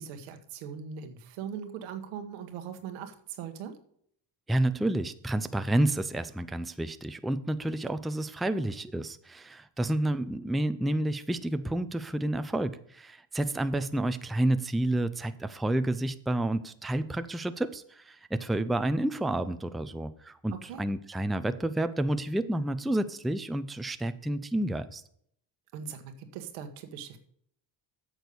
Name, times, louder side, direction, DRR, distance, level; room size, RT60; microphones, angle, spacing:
voice 1, 0.0-3.8 20.5-20.8 25.7-27.2, right 7 dB, 90° right, 7 dB, 1.4 m, -40 dB
voice 2, 4.5-25.0, right 1 dB, ahead, 11 dB, 0.5 m, -30 dB
8.9 x 6.3 x 6.9 m, 0.67 s
supercardioid pair, 85°, 49 cm